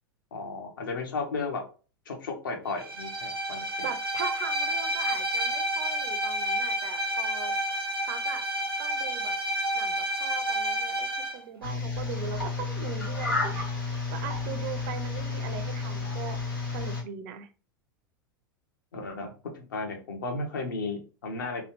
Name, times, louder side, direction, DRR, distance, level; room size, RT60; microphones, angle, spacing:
voice 1, 0.3-1.6 2.1-3.7 18.9-21.7, left 3 dB, 65° left, 3 dB, 0.9 m, -34 dB
Bowed string instrument, 2.8-11.4, right 1 dB, 85° right, 0.7 m, -30 dB
voice 2, 3.8-7.5 8.1-8.5 8.8-9.3 9.7-11.1 11.3-13.7 14.1-16.4 16.7-17.5, right 8 dB, 50° right, 9 dB, 0.5 m, -39 dB
sound 1, 11.6-17.0, left 4 dB, 85° left, 1.6 m, -31 dB
3.1 x 2.3 x 3.0 m, 0.36 s
figure-of-eight pair, 85°, 12 cm